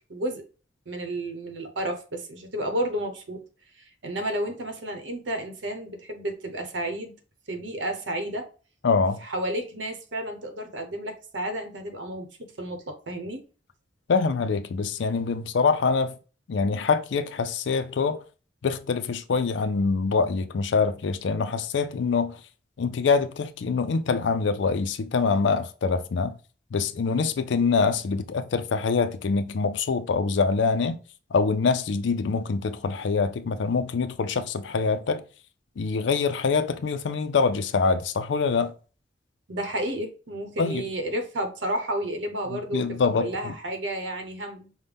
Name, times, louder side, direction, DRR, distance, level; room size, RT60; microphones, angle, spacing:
voice 1, 0.1-0.5 0.9-3.4 3.8-7.1 7.5-8.5 9.2-13.4 39.5-44.7, right 1 dB, 85° right, 0.9 m, -31 dB
voice 2, 8.8-9.2 14.1-16.2 16.5-18.2 18.6-22.4 22.8-26.4 26.7-31.0 31.3-35.2 35.8-38.7 40.6-40.9 42.5-43.5, left 4 dB, 75° left, 0.4 m, -25 dB
5.4 x 2.2 x 3.4 m
head